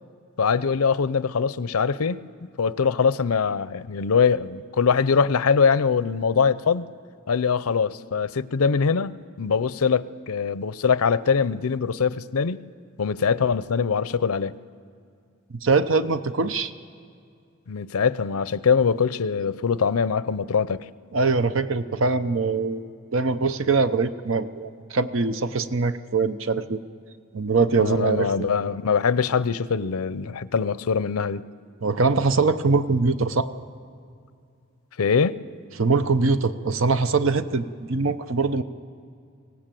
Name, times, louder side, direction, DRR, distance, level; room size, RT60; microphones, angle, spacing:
voice 1, 0.4-2.3 2.6-6.9 7.3-12.7 13.0-14.5 17.7-20.8 27.8-31.4 35.0-35.4, left 6 dB, 85° left, 16 dB, 0.6 m, -23 dB
voice 2, 15.6-16.7 21.1-26.8 27.3-28.5 31.8-33.5 35.8-38.6, right 4 dB, 65° right, 11 dB, 0.7 m, -23 dB
24.5 x 18.0 x 7.6 m, 2.3 s
head